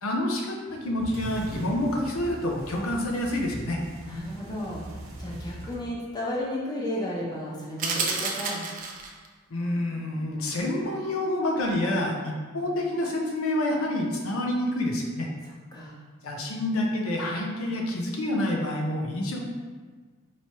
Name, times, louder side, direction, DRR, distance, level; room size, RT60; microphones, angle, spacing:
voice 1, 0.0-3.8 9.5-15.3 16.2-19.4, left 1 dB, 85° left, 0 dB, 0.6 m, -28 dB
sound 1, 0.7-5.8, right 1 dB, 90° right, 0.7 m, -41 dB
voice 2, 4.0-8.6 15.4-16.0, left 1 dB, 20° left, -5 dB, 0.6 m, -33 dB
sound 2, 7.8-9.3, right 4 dB, 40° right, 0.4 m, -30 dB
4.5 x 2.9 x 2.9 m, 1.5 s
head